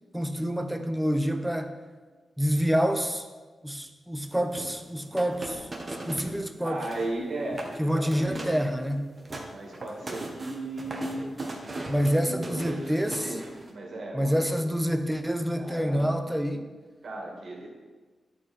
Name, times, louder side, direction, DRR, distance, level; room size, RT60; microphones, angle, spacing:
voice 1, 0.1-1.7 2.4-3.2 3.6-5.7 6.1-6.8 7.8-9.1 11.9-13.4 14.1-16.6, equal, 5° right, 6 dB, 0.7 m, -27 dB
sound 1, 4.5-6.4 6.6-7.1 7.5-7.8 8.1-8.6 9.0-13.7, right 2 dB, 35° right, 1.2 m, -38 dB
voice 2, 6.6-8.5 9.5-11.3 12.2-13.4 13.7-14.6 15.5-16.2 17.0-17.7, right 2 dB, 65° right, -2 dB, 2.2 m, -36 dB
10.0 x 4.5 x 4.3 m, 1.3 s
cardioid pair, 75°, 0 cm